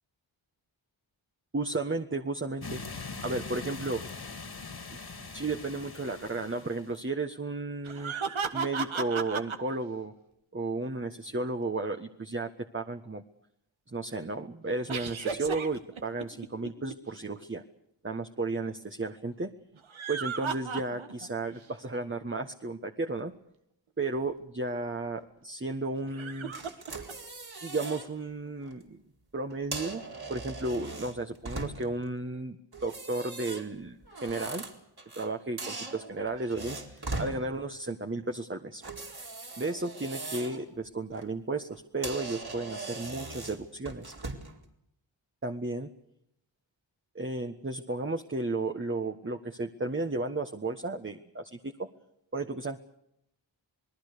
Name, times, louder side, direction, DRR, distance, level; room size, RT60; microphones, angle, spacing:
voice 1, 1.5-4.0 5.3-8.1 8.5-10.1 10.5-13.2 13.9-17.6 18.0-19.5 20.1-23.3 24.0-26.5 27.6-29.0 29.3-30.0 30.3-34.6 35.1-38.8 39.6-44.1 45.4-45.9 47.1-51.9 52.3-52.8, right 2 dB, 25° right, 5 dB, 1.5 m, -33 dB
sound 1, 2.6-7.0, left 4 dB, 55° left, 2.7 m, -42 dB
sound 2, 7.8-9.6 14.9-16.9 19.8-21.3 21.7-21.8 24.2-24.3 26.1-27.1, right 6 dB, 80° right, 1.7 m, -34 dB
sound 3, 26.5-28.1 28.5-28.7 29.5-32.0 32.7-35.3 35.6-37.4 38.8-40.6 41.0-41.3 41.7-41.8 42.0-44.6, right 3 dB, 50° right, 4.3 m, -40 dB
27.5 x 19.5 x 6.8 m, 0.75 s
cardioid pair, 40°, 47 cm